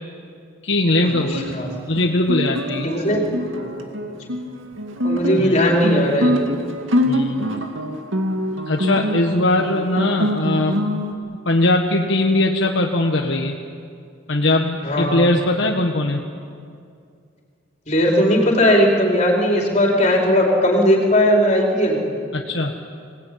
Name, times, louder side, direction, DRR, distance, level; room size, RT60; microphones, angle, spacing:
voice 1, 0.6-1.5 1.9-2.9 5.4-5.6 7.1-7.5 8.7-11.0 11.4-13.6 14.3-16.2 22.3-22.7, left 2 dB, 65° left, 1 dB, 1.4 m, -20 dB
Guitar, 1.1-11.1, equal, 85° right, 2.2 m, -24 dB
voice 2, 2.8-3.2 3.6-3.8 5.0-6.3 14.8-15.2 17.9-22.0, equal, 35° left, -1 dB, 4.8 m, -17 dB
25.5 x 18.5 x 9.6 m, 2.3 s
head